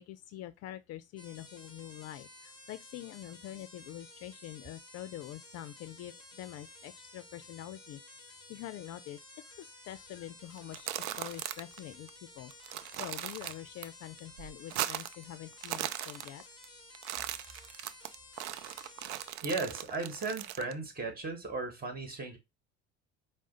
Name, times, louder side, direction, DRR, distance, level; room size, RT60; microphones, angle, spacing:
voice 1, 0.0-16.4, left 13 dB, 50° left, 0.4 m, -46 dB
sound 1, 1.2-19.3, left 2 dB, 15° left, 1.6 m, -54 dB
sound 2, 10.6-11.8 12.1-12.2 12.5-13.9 14.2-15.2 15.5-16.7 16.9-20.7, right 13 dB, 70° right, 0.5 m, -38 dB
voice 2, 19.4-22.4, right 3 dB, 25° right, 1.7 m, -36 dB
4.7 x 2.1 x 3.9 m
hypercardioid pair, 70°, 34 cm